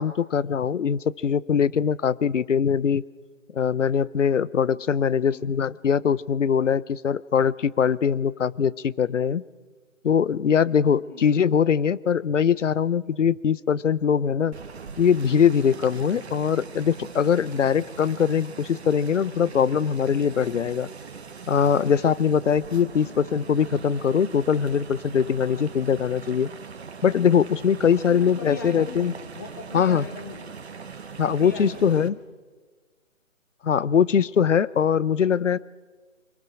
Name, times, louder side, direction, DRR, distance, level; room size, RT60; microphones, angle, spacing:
voice 1, 0.0-3.0 3.5-9.4 10.0-14.5 15.0-20.9 21.5-26.5 27.0-29.1 29.7-30.1 31.2-32.2 33.6-35.6, left 7 dB, 65° left, 21 dB, 0.7 m, -22 dB
sound 1, 14.5-32.1, right 5 dB, 50° right, 1.5 m, -41 dB
voice 2, 28.1-30.5 31.2-32.0, left 3 dB, 15° left, 6 dB, 0.8 m, -40 dB
25.5 x 18.5 x 6.2 m, 1.4 s
figure-of-eight pair, 155°, 40 cm